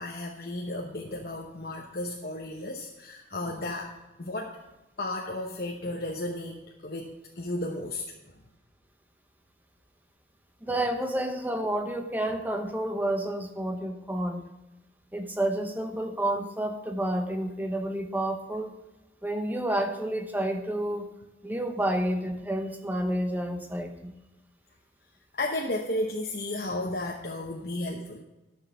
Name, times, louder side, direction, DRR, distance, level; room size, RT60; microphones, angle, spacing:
voice 1, 0.0-3.9 4.2-4.6 5.0-8.0 25.3-28.2, left 1 dB, 55° left, 0 dB, 0.9 m, -33 dB
voice 2, 10.7-14.4 15.1-18.7 19.2-21.1 21.4-24.1, right 1 dB, 10° right, 5 dB, 0.9 m, -30 dB
12.0 x 6.5 x 5.6 m, 1.0 s
head